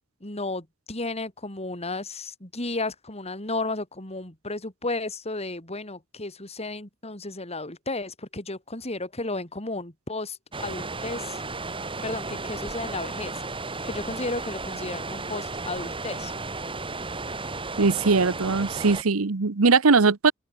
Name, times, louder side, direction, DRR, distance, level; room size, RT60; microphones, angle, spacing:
voice 1, 0.2-11.4 12.0-16.3, left 2 dB, 30° left, 4.8 m, -33 dB
sound 1, 10.5-19.0, right 3 dB, 25° right, 3.4 m, -34 dB
voice 2, 17.8-20.3, right 4 dB, 80° right, 1.0 m, -20 dB
head